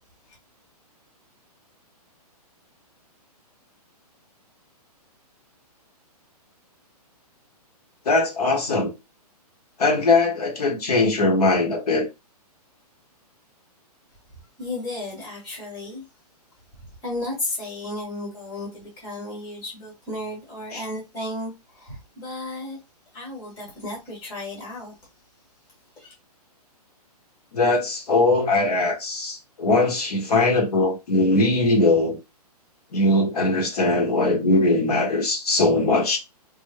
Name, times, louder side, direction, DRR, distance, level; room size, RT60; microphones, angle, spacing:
voice 1, 8.1-8.9 9.8-12.1 20.7-20.8 27.5-32.2 32.9-36.2, left 2 dB, 70° left, 1.7 m, -20 dB
voice 2, 14.6-16.0 17.0-22.8 23.1-24.9 26.0-26.1, left 1 dB, 20° left, 1.6 m, -33 dB
3.3 x 3.3 x 2.2 m
hypercardioid pair, 170°, 20 cm